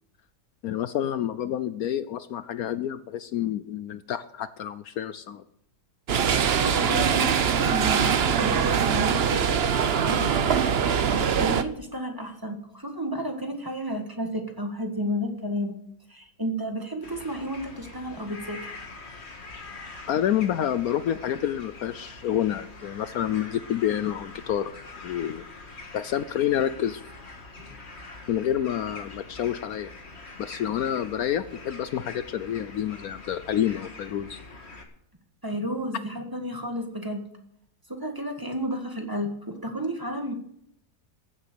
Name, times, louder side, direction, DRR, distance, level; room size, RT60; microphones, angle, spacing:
voice 1, 0.6-5.4 20.1-24.7 25.0-25.4 25.9-27.0 28.3-29.9 30.4-34.4, left 10 dB, 70° left, 13 dB, 1.1 m, -28 dB
sound 1, 6.1-11.6, right 7 dB, 50° right, 0.8 m, -23 dB
voice 2, 6.5-9.6 10.1-10.8 11.4-15.8 16.1-18.9 35.4-37.3 37.9-40.3, equal, 15° right, 3 dB, 1.7 m, -32 dB
sound 2, 17.0-34.8, left 3 dB, 40° left, 2.0 m, -44 dB
15.5 x 8.2 x 6.8 m, 0.72 s
omnidirectional pair, 1.7 m